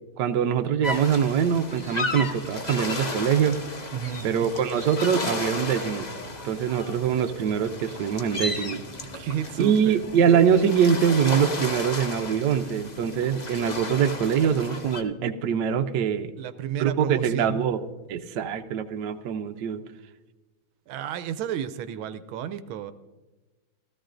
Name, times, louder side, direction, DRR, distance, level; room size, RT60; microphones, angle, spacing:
voice 1, 0.2-3.6 4.2-6.1 6.4-8.8 9.6-16.3 16.8-17.8 18.1-19.8, right 8 dB, 65° right, 6 dB, 1.2 m, -23 dB
sound 1, 0.8-15.0, left 2 dB, 40° left, 0.6 m, -34 dB
voice 2, 3.9-4.2 9.1-10.0 16.4-17.6 20.9-22.9, right 9 dB, 85° right, 11 dB, 1.4 m, -32 dB
17.0 x 14.0 x 2.5 m, 1.2 s
omnidirectional pair, 2.2 m